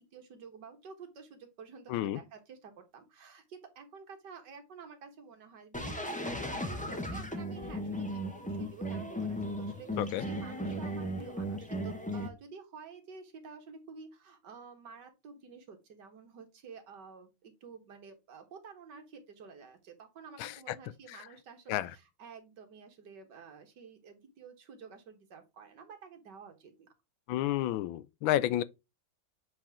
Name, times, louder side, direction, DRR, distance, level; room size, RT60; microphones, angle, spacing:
voice 1, 0.0-26.9, right 5 dB, 60° right, 2.0 m, -50 dB
voice 2, 1.9-2.2 10.0-10.2 20.4-20.8 21.1-21.2 21.7-21.9 27.3-28.6, left 13 dB, 80° left, 1.3 m, -31 dB
sound 1, 5.7-12.3, equal, 10° left, 0.5 m, -36 dB
7.5 x 4.2 x 3.5 m
omnidirectional pair, 2.2 m